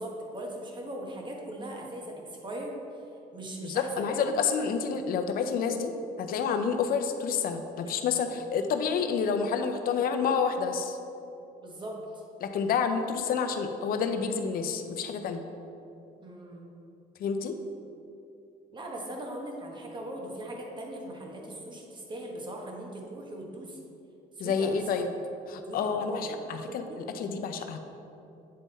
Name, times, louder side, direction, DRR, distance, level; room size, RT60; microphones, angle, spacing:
voice 1, 0.0-2.7 3.3-4.4 11.6-12.2 16.2-16.7 18.7-23.8 24.4-24.8 25.7-27.0, right 1 dB, 25° right, 0 dB, 1.2 m, -40 dB
voice 2, 3.6-5.9 6.2-11.0 12.4-15.4 17.2-17.6 24.4-25.1 25.5-27.8, left 6 dB, 60° left, 7 dB, 0.6 m, -29 dB
8.6 x 3.6 x 4.1 m, 2.7 s
cardioid pair, 110°, 17 cm